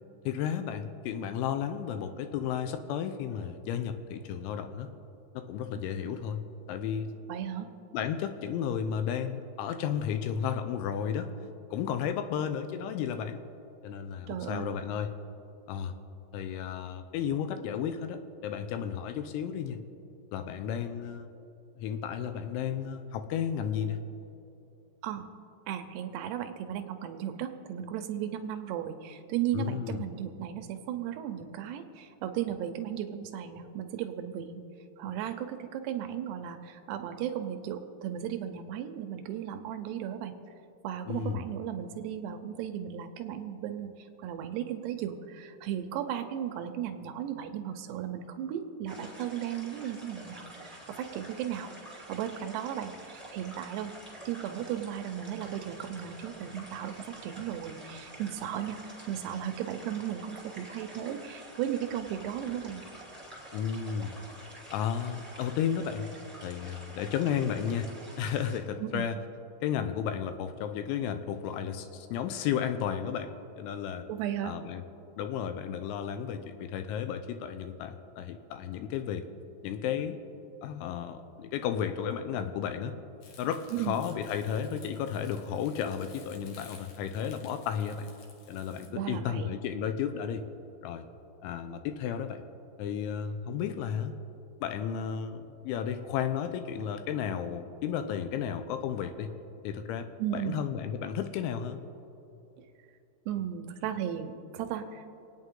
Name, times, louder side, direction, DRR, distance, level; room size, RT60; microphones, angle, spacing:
voice 1, 0.3-4.9 5.3-7.1 7.9-11.3 11.7-13.4 13.8-15.1 15.7-15.9 16.3-19.8 20.3-21.3 21.8-24.0 29.5-30.0 41.1-41.4 63.5-64.2 64.7-66.1 66.4-67.9 68.2-69.2 69.6-73.3 73.6-74.1 74.4-74.8 75.2-79.3 79.6-80.2 80.6-82.9 83.4-88.1 88.5-90.5 90.8-91.0 91.4-92.4 92.8-94.1 94.6-99.3 99.6-100.1 100.3-101.8, left 8 dB, 80° left, 9 dB, 3.0 m, -33 dB
voice 2, 7.3-7.7 14.3-14.7 25.0-25.3 25.7-34.7 35.0-40.4 40.8-53.9 54.3-58.8 59.1-62.8 68.8-69.1 74.1-74.6 83.7-84.0 88.9-89.6 100.2-100.6 103.3-105.1, right 10 dB, 80° right, 6 dB, 2.5 m, -35 dB
sound 1, 48.9-68.6, right 1 dB, 5° right, 1.3 m, -48 dB
Crumpling crinkling, 83.2-88.9, left 5 dB, 65° left, 2.5 m, -55 dB
27.0 x 9.2 x 3.7 m, 2.9 s
omnidirectional pair, 5.6 m